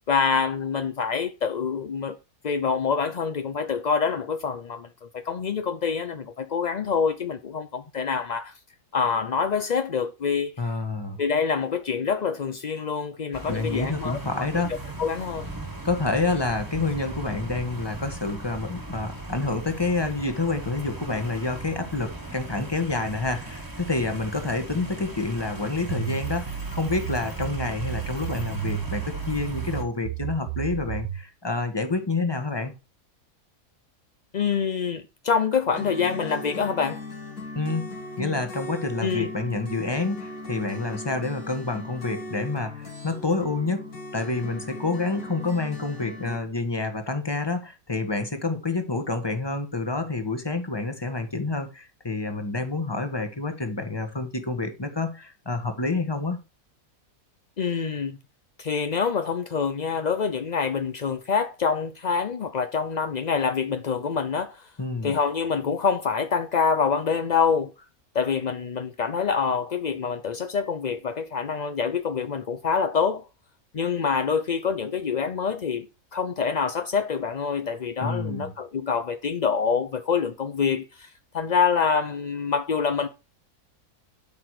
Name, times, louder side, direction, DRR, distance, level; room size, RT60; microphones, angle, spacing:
voice 1, 0.1-2.2 2.4-4.9 5.1-8.5 8.9-10.5 11.2-15.5 34.3-37.0 39.0-39.3 57.6-58.2 58.6-64.7 65.0-67.7 68.1-73.2 73.7-83.1, left 6 dB, 45° left, 0.5 m, -26 dB
voice 2, 10.6-11.2 13.5-14.7 15.8-32.7 37.5-37.9 38.2-56.4 64.8-65.2 78.0-78.5, left 3 dB, 15° left, 1.5 m, -28 dB
sound 1, 13.3-29.8, right 2 dB, 15° right, 1.8 m, -38 dB
sound 2, 25.9-31.3, right 12 dB, 70° right, 1.2 m, -33 dB
sound 3, 35.7-46.4, left 2 dB, 80° left, 3.5 m, -38 dB
12.5 x 6.0 x 4.8 m
omnidirectional pair, 1.6 m